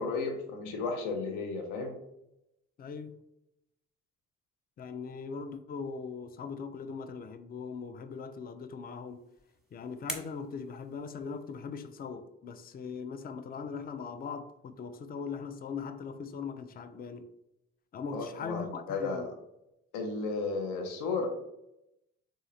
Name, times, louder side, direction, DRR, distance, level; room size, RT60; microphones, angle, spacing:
voice 1, 0.0-1.9 18.1-19.2 19.9-21.3, left 4 dB, 75° left, 0.6 m, -33 dB
voice 2, 2.8-3.2 4.8-9.3 9.7-17.3 17.9-19.3, left 5 dB, 30° left, 0.4 m, -40 dB
sound 1, 9.0-11.7, right 1 dB, ahead, 1.0 m, -46 dB
3.7 x 2.5 x 2.7 m
hypercardioid pair, 45°, 33 cm